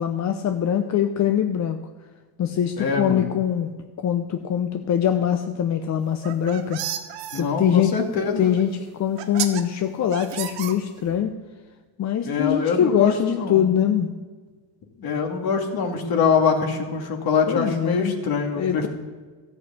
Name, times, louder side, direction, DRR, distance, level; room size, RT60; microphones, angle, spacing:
voice 1, 0.0-1.8 2.4-3.7 4.0-6.8 7.3-7.9 8.4-11.4 12.0-14.1 17.5-18.1 18.5-18.9, left 9 dB, 40° left, 7 dB, 0.7 m, -23 dB
voice 2, 2.8-3.3 7.3-8.5 12.2-13.7 15.0-18.9, left 5 dB, 55° left, 3 dB, 2.4 m, -24 dB
sound 1, 6.1-7.4 8.6-8.7 9.2-9.6 10.1-11.2, right 11 dB, 85° right, 1.3 m, -31 dB
13.0 x 6.7 x 8.4 m, 1.5 s
cardioid pair, 110°, 42 cm